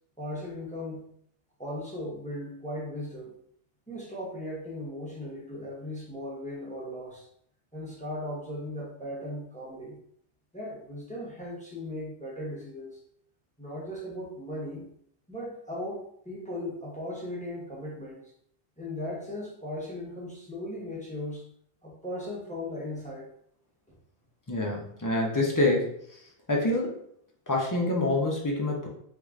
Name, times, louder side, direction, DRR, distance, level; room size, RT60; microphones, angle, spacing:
voice 1, 0.2-1.1 1.6-3.3 3.9-7.3 7.7-10.0 10.5-13.0 13.6-14.8 15.3-18.3 18.8-21.5 21.8-23.3, left 1 dB, 5° left, -4 dB, 0.8 m, -37 dB
voice 2, 24.5-25.9 26.5-27.0 27.5-28.9, left 2 dB, 25° left, -1 dB, 0.4 m, -26 dB
4.7 x 2.6 x 2.4 m, 0.67 s
omnidirectional pair, 1.2 m